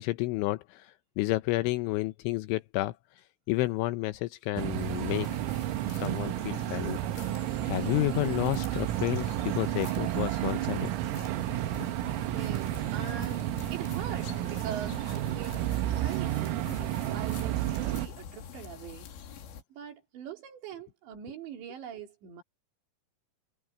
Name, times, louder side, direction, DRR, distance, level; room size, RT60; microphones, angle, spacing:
voice 1, 0.0-5.3 5.9-7.0 7.6-10.9, left 19 dB, 80° left, 2.9 m, -31 dB
sound 1, 4.6-18.1, right 15 dB, 90° right, 3.6 m, -31 dB
sound 2, 4.8-19.6, left 8 dB, 65° left, 4.3 m, -45 dB
voice 2, 12.2-16.5 17.0-19.1 19.7-22.4, right 8 dB, 65° right, 5.0 m, -43 dB
omnidirectional pair, 5.8 m